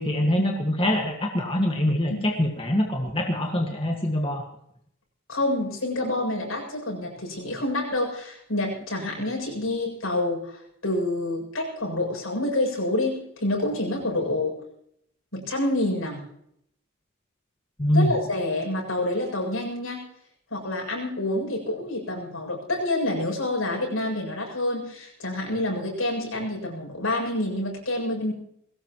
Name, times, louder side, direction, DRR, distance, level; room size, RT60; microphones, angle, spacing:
voice 1, 0.0-4.4 17.8-18.1, left 1 dB, 25° left, 1 dB, 1.8 m, -24 dB
voice 2, 5.3-14.6 15.3-16.2 17.9-20.1 20.5-28.3, left 1 dB, 80° left, -1 dB, 7.5 m, -28 dB
22.0 x 18.0 x 3.1 m, 0.72 s
head